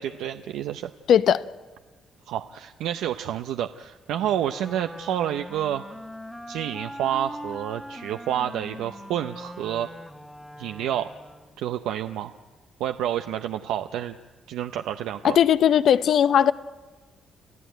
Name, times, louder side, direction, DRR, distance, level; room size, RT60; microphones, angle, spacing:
voice 1, 0.0-0.9 2.3-5.9 6.5-9.9 10.6-11.1 11.6-12.3 12.8-14.2 14.5-15.4, right 11 dB, 90° right, 0.6 m, -29 dB
voice 2, 1.1-1.4 15.2-16.5, left 9 dB, 65° left, 0.6 m, -18 dB
Wind instrument woodwind instrument, 4.2-11.6, equal, 5° left, 1.2 m, -41 dB
30.0 x 13.5 x 9.3 m
cardioid pair, 90°, 0 cm